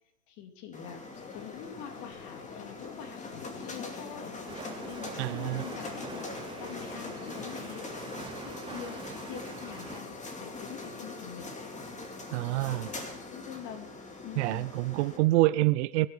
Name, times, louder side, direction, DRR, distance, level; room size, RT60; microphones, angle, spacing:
voice 1, 0.3-1.0 1.3-4.3 4.8-6.3 6.6-7.9 8.2-10.1 10.4-11.5 12.7-13.0 13.3-13.9 14.2-14.7, left 8 dB, 45° left, 6 dB, 3.0 m, -45 dB
sound 1, 0.7-15.2, left 3 dB, 15° left, 2.6 m, -42 dB
sound 2, 1.1-8.1, left 11 dB, 75° left, 1.1 m, -49 dB
Train, 4.5-10.0, right 6 dB, 10° right, 0.7 m, -45 dB
voice 2, 5.2-5.6 12.3-12.9 14.4-16.1, right 19 dB, 50° right, 17 dB, 0.6 m, -26 dB
22.5 x 12.5 x 4.9 m, 0.75 s
hypercardioid pair, 115°, 45 cm